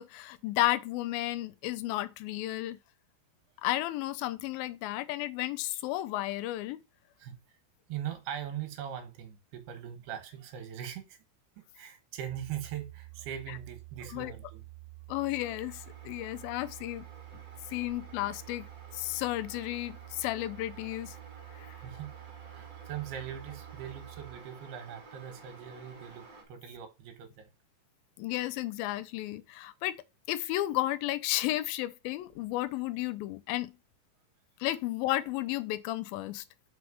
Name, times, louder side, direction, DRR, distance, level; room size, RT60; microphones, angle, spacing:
voice 1, 0.0-2.8 3.6-6.8 13.5-13.6 14.1-14.3 15.1-17.1 17.7-18.7 18.9-21.2 21.6-21.7 28.2-33.7 34.6-36.4, left 16 dB, 80° left, 2.2 m, -33 dB
voice 2, 7.9-11.2 11.6-14.6 21.8-27.5, right 10 dB, 80° right, 3.2 m, -41 dB
sound 1, 12.3-24.4, right 22 dB, 55° right, 3.0 m, -49 dB
sound 2, 15.4-26.4, right 3 dB, 30° right, 2.6 m, -53 dB
6.2 x 4.7 x 4.9 m
omnidirectional pair, 4.6 m